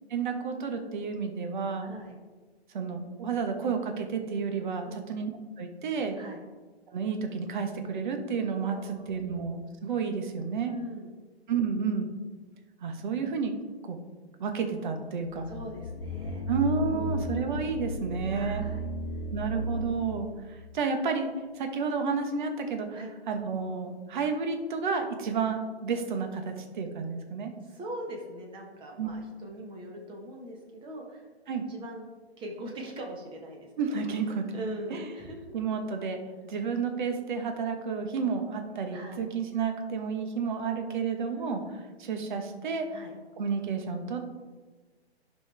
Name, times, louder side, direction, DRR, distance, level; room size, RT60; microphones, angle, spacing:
voice 1, 0.1-1.9 2.7-5.3 5.6-6.2 6.9-10.7 11.5-12.1 12.8-13.6 13.8-14.0 14.4-15.5 16.5-18.6 19.3-23.0 23.3-27.5 29.0-29.1 31.5-31.6 33.8-34.6 34.9-35.1 35.5-41.6 42.0-42.9 43.4-44.3, right 5 dB, 45° right, 5 dB, 1.2 m, -31 dB
voice 2, 1.8-2.1 4.8-5.0 6.2-6.4 8.7-9.4 10.6-11.1 15.5-16.4 16.9-17.4 18.3-18.8 22.9-23.1 27.6-31.2 31.7-32.0 32.4-33.7 34.5-35.4 38.9-39.2 41.2-41.6 42.9-43.1, right 1 dB, 15° right, 1 dB, 1.3 m, -41 dB
sound 1, 15.3-20.4, equal, 55° left, 0.9 m, -34 dB
10.5 x 5.6 x 3.4 m, 1.3 s
figure-of-eight pair, 130°, 33 cm